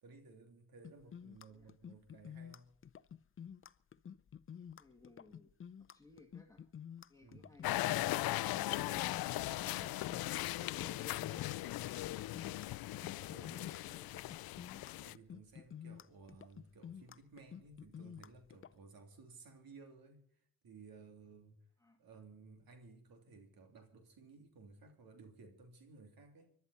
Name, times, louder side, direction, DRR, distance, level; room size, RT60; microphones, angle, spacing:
voice 1, 0.0-2.8 7.2-7.5 13.3-13.6 15.0-21.7 22.0-26.5, right 4 dB, 70° right, 3.2 m, -58 dB
sound 1, 0.8-18.7, left 8 dB, 35° left, 0.6 m, -51 dB
voice 2, 4.8-5.5 5.8-6.6 7.1-7.7 12.9-14.3 21.8-22.0, left 2 dB, 10° left, 2.2 m, -61 dB
sound 2, 7.6-15.1, left 17 dB, 75° left, 0.5 m, -38 dB
25.0 x 11.5 x 4.2 m
cardioid pair, 80°, 37 cm